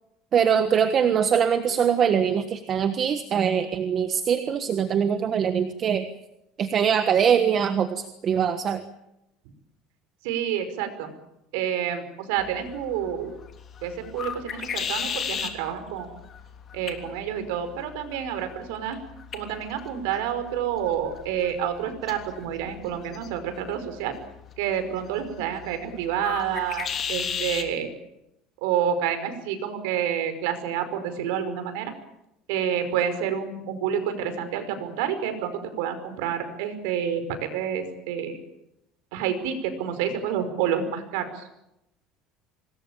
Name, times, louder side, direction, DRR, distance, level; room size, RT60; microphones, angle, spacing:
voice 1, 0.3-6.1 6.6-8.8, right 7 dB, 30° right, 9 dB, 1.3 m, -22 dB
voice 2, 10.2-11.1 11.5-13.3 13.8-16.1 16.7-19.0 19.3-24.2 24.6-27.9 28.6-31.9 32.5-35.5 35.8-38.3 39.1-41.5, right 9 dB, 85° right, 9 dB, 5.5 m, -28 dB
sound 1, 12.4-27.7, left 7 dB, 30° left, 3.2 m, -37 dB
26.0 x 21.0 x 9.0 m, 0.86 s
cardioid pair, 165°, 0 cm